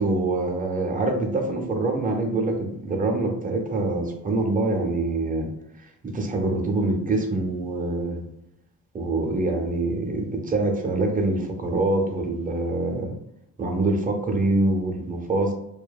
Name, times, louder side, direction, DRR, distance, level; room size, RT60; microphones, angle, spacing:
voice 1, 0.0-5.5 5.8-8.2 8.9-13.1 13.6-15.5, right 2 dB, 25° right, 2 dB, 0.4 m, -25 dB
2.7 x 2.2 x 2.2 m, 0.81 s
wide cardioid pair, 130°, 38 cm